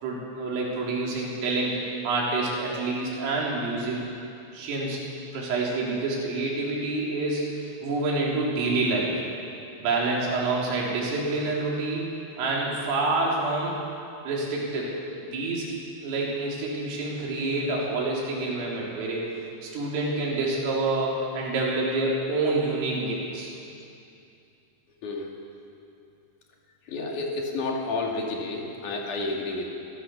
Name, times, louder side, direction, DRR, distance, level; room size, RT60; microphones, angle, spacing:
voice 1, 0.0-4.0 4.5-5.0 5.3-7.5 7.8-9.1 9.8-12.1 12.4-13.8 14.2-14.9 15.2-15.7 16.0-19.3 19.6-23.5, right 2 dB, 80° right, -4 dB, 6.3 m, -27 dB
voice 2, 25.0-25.3 26.9-29.7, left 3 dB, 50° left, 0 dB, 3.2 m, -30 dB
26.5 x 15.5 x 7.0 m, 2.6 s
omnidirectional pair, 5.8 m